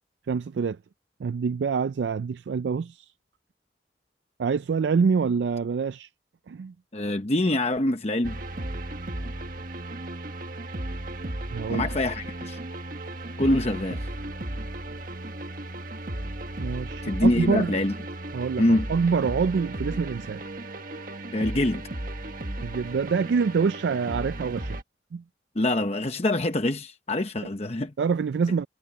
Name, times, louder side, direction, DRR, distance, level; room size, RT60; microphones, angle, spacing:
voice 1, 0.3-0.8 1.2-3.1 4.4-6.1 6.5-6.7 11.5-11.9 16.6-17.7 18.3-20.4 22.6-24.8 25.1-25.2 28.0-28.7, right 5 dB, 80° right, 0.4 m, -26 dB
voice 2, 6.9-8.4 11.7-12.6 13.4-14.1 17.0-17.9 18.6-18.9 21.3-21.8 25.5-27.9, left 1 dB, 35° left, 0.9 m, -25 dB
sound 1, 8.2-24.8, right 1 dB, 50° right, 1.5 m, -35 dB
head